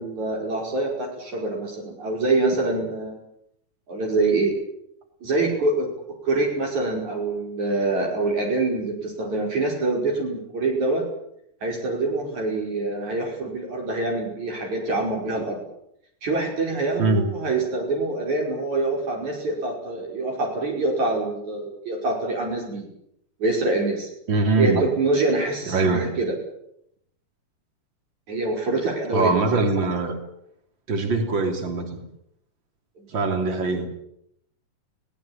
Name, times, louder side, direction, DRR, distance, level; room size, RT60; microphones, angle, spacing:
voice 1, 0.0-3.1 3.9-4.6 5.2-5.9 6.2-11.0 11.6-15.6 16.2-22.9 23.4-24.1 24.6-26.3 28.3-29.3 33.0-33.1, right 2 dB, 65° right, 0 dB, 6.7 m, -25 dB
voice 2, 24.3-24.9 25.7-26.1 29.1-30.2 30.9-32.0 33.1-33.9, right 3 dB, 35° right, 5 dB, 3.9 m, -22 dB
24.0 x 18.5 x 8.9 m, 0.75 s
omnidirectional pair, 3.6 m